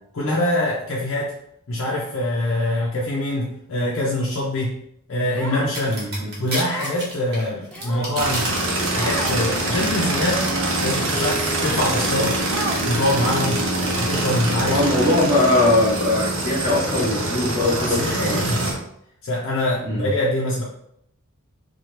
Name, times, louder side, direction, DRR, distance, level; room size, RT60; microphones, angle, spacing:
voice 1, 0.1-1.3 1.7-4.8 5.1-6.0 6.4-8.5 8.9-10.5 10.8-12.4 12.8-13.6 14.0-14.8 17.8-18.7 19.2-20.6, left 1 dB, 60° left, -5 dB, 0.5 m, -24 dB
Human voice, 5.4-6.0 6.7-7.1 7.7-8.3 9.0-9.4 10.0-10.4 11.1-11.2 12.5-13.1, right 1 dB, 5° left, 0.4 m, -32 dB
sound 1, 5.7-8.5 8.8-9.3, right 1 dB, 50° right, 1.1 m, -30 dB
voice 2, 5.8-6.3 14.7-18.4 19.8-20.1, left 2 dB, 15° right, -7 dB, 0.8 m, -21 dB
sound 2, 8.2-18.7, right 1 dB, 65° right, 0.7 m, -24 dB
2.8 x 2.2 x 3.0 m, 0.72 s
head